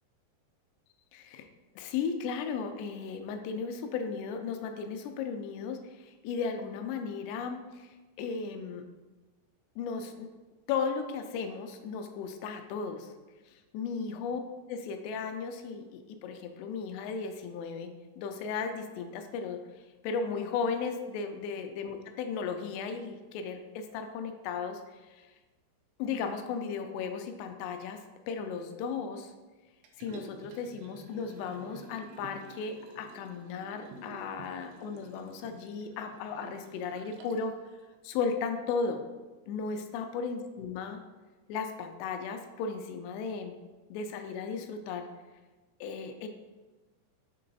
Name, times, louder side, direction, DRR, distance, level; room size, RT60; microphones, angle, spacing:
voice 1, 1.1-1.5 1.8-8.8 9.8-10.3 10.7-13.1 13.7-14.4 14.7-17.9 18.2-19.6 20.0-25.3 26.0-28.0 28.3-29.3 30.0-37.5 38.0-39.0 39.5-41.0 41.5-43.6 43.9-45.1 45.8-46.3, left 5 dB, 85° left, 6 dB, 2.6 m, -35 dB
Liquid, 29.8-37.5 37.9-38.0, right 4 dB, 90° right, 2.8 m, -51 dB
6.5 x 3.8 x 4.0 m, 1.2 s
omnidirectional pair, 4.9 m